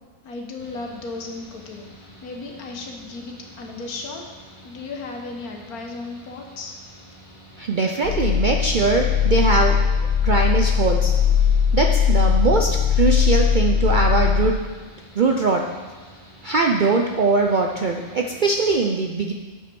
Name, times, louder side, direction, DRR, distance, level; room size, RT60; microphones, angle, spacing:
voice 1, 0.2-4.2 4.6-6.8, left 3 dB, 85° left, 1 dB, 1.6 m, -35 dB
Mechanical fan, 0.6-18.7, equal, 20° left, 2.3 m, -48 dB
voice 2, 7.6-10.0 10.2-11.1 11.7-14.6 15.1-15.7 16.4-19.3, right 3 dB, 70° right, 2 dB, 0.4 m, -21 dB
sound 1, 8.0-14.5, left 7 dB, 65° left, 0.7 m, -19 dB
8.2 x 5.9 x 6.1 m, 1.3 s
omnidirectional pair, 1.5 m